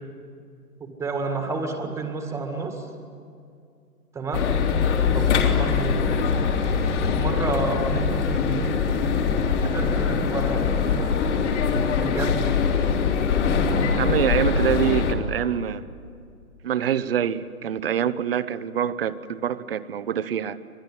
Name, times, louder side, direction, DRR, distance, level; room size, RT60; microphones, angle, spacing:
voice 1, 0.8-2.9 4.1-4.5 5.1-6.0 7.0-8.8 9.7-11.1 12.0-12.5, right 3 dB, 5° right, 4 dB, 1.9 m, -30 dB
sound 1, 4.3-15.1, left 6 dB, 50° left, 3.2 m, -22 dB
voice 2, 14.0-15.8 16.6-20.6, right 9 dB, 40° right, 15 dB, 1.0 m, -25 dB
25.0 x 20.5 x 9.7 m, 2.4 s
hypercardioid pair, 150°, 45 cm